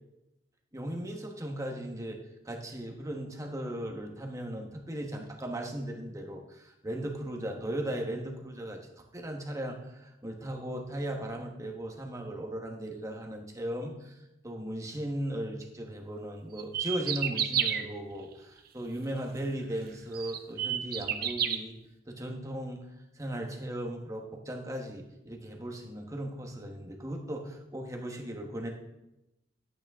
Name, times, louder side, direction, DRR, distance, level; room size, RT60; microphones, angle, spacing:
voice 1, 0.7-2.2 2.4-8.8 9.1-14.1 14.4-21.8 22.1-22.8 23.2-28.7, right 1 dB, 20° right, 2 dB, 1.3 m, -37 dB
sound 1, 16.6-17.8 19.5-19.6 20.1-21.6, right 9 dB, 55° right, 0.8 m, -29 dB
11.5 x 8.7 x 3.6 m, 0.93 s
head